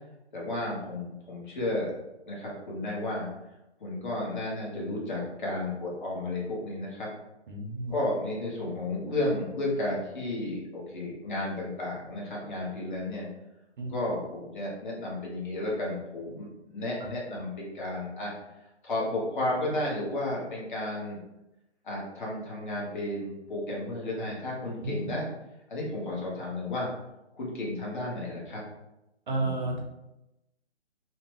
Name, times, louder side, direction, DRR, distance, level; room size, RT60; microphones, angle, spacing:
voice 1, 0.3-1.9 2.3-3.3 3.8-7.1 7.9-13.3 13.9-18.3 18.8-21.2 21.8-25.2 25.7-26.9 27.3-28.6 29.3-29.8, left 1 dB, 45° left, -4 dB, 1.0 m, -33 dB
voice 2, 7.5-7.9 13.8-13.9 17.0-17.1 24.8-25.1 29.3-29.8, right 2 dB, 45° right, 0 dB, 0.6 m, -32 dB
3.0 x 2.0 x 2.9 m, 0.93 s
hypercardioid pair, 150°, 35 cm